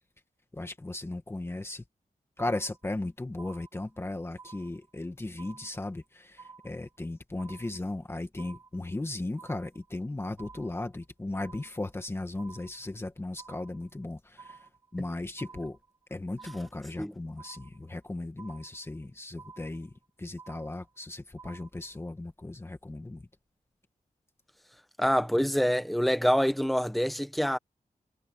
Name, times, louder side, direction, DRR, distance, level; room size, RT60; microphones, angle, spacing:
voice 1, 0.5-1.8 2.4-15.8 16.1-19.9 20.2-23.2, left 2 dB, 15° left, 1.9 m, -36 dB
sound 1, 2.4-3.0 3.4-4.0 4.4-5.0 5.4-6.0 6.4-7.0 7.4-8.0 8.4-9.0 9.4-10.0 10.4-11.0 11.4-12.0 12.4-13.0 13.4-14.0 14.4-15.0 15.4-16.0 16.4-17.0 17.4-18.0 18.4-19.0 19.4-20.0 20.4-21.0 21.4-22.0, right 5 dB, 25° right, 3.2 m, -52 dB
voice 2, 25.0-27.6, equal, ahead, 1.4 m, -26 dB
wide cardioid pair, 155°, 14 cm